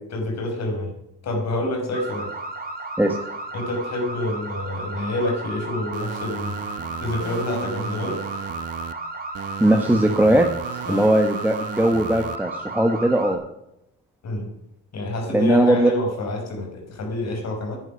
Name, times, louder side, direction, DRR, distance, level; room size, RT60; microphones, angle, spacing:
voice 1, 0.1-0.9 1.2-2.3 3.5-6.6 7.0-8.2 10.9-11.1 14.2-14.5 14.9-17.8, left 1 dB, 60° left, 3 dB, 5.0 m, -27 dB
sound 1, 1.9-13.4, right 2 dB, 30° right, 3.3 m, -34 dB
sound 2, 5.9-8.9 9.3-12.4, right 9 dB, 55° right, 0.9 m, -35 dB
voice 2, 9.6-10.5 10.7-13.4 15.3-15.9, right 1 dB, 5° right, 3 dB, 1.4 m, -19 dB
10.5 x 10.0 x 7.0 m, 0.83 s
cardioid pair, 90°, 30 cm